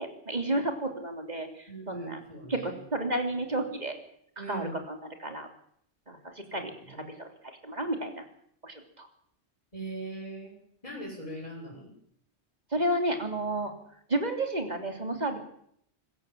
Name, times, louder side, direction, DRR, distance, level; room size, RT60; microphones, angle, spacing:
voice 1, 0.0-2.2 2.5-3.9 4.5-5.5 6.1-8.2 8.6-9.1 12.7-13.7 14.1-15.4, right 1 dB, 40° right, 4 dB, 3.4 m, -32 dB
voice 2, 1.7-2.7 4.4-4.7 6.5-7.1 9.7-10.6 10.8-11.9, right 2 dB, 30° left, -7 dB, 7.9 m, -40 dB
25.5 x 15.0 x 7.5 m, 0.69 s
omnidirectional pair, 1.2 m